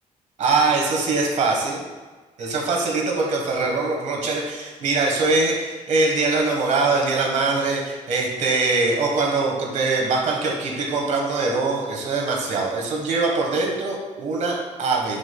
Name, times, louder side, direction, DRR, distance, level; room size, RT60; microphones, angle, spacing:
voice 1, 0.4-1.8 2.4-15.2, right 3 dB, 65° right, -1 dB, 1.4 m, -22 dB
7.2 x 6.7 x 2.3 m, 1.3 s
cardioid pair, 130°, 13 cm